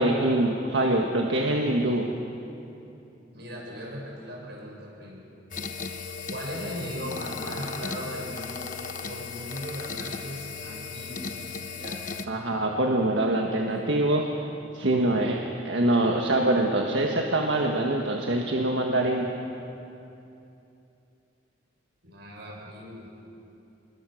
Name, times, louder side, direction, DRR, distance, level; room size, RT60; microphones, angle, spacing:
voice 1, 0.0-2.1 12.3-14.3 14.7-15.4 15.6-19.3, right 1 dB, 85° right, 1 dB, 1.6 m, -24 dB
voice 2, 3.3-5.2 6.3-8.7 9.0-12.0 22.0-23.1, equal, 65° right, -2 dB, 7.0 m, -38 dB
sound 1, 5.5-12.3, left 5 dB, 45° left, 1.2 m, -36 dB
27.5 x 22.0 x 6.5 m, 2.8 s
head